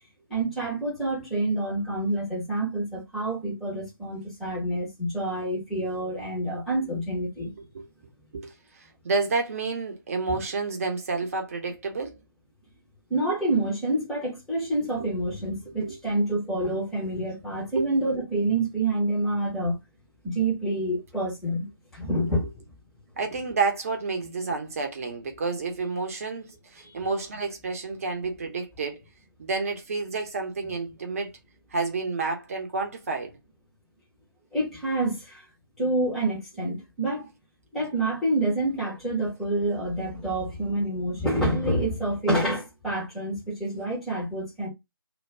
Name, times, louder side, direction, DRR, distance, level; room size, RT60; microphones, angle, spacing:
voice 1, 0.3-7.5 10.3-10.4 13.1-19.8 20.2-21.7 21.9-22.5 26.8-26.9 34.5-35.4 35.8-37.3 37.7-44.7, right 1 dB, ahead, 0.7 m, -27 dB
voice 2, 8.3-12.2 15.8-16.0 17.8-17.9 22.2-22.3 23.2-29.0 29.4-31.3 31.7-33.3, right 4 dB, 40° right, 0.8 m, -30 dB
2.3 x 2.2 x 3.2 m
figure-of-eight pair, 150°, 12 cm